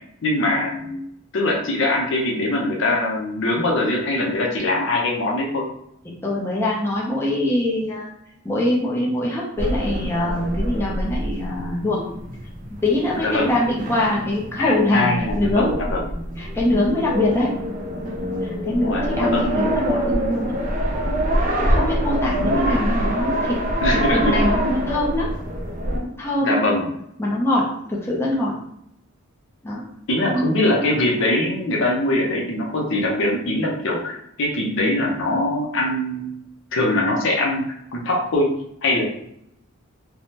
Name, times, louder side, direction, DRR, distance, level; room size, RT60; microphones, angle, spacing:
voice 1, 0.2-1.0 1.3-5.7 13.2-13.5 14.6-16.0 18.8-19.5 23.8-24.3 26.4-26.9 30.1-36.4 36.7-37.6 37.9-38.5 38.8-39.0, left 1 dB, 60° left, -1 dB, 0.6 m, -22 dB
voice 2, 6.2-8.1 8.4-12.0 12.8-15.1 15.3-15.8 16.4-17.5 18.4-20.6 21.6-23.6 23.9-25.3 26.0-26.6 27.2-28.5 29.6-29.8 30.2-30.5, left 1 dB, 10° left, -5 dB, 0.5 m, -23 dB
sound 1, 9.6-26.0, equal, 40° right, 0.5 m, -25 dB
3.4 x 2.0 x 2.8 m, 0.75 s
head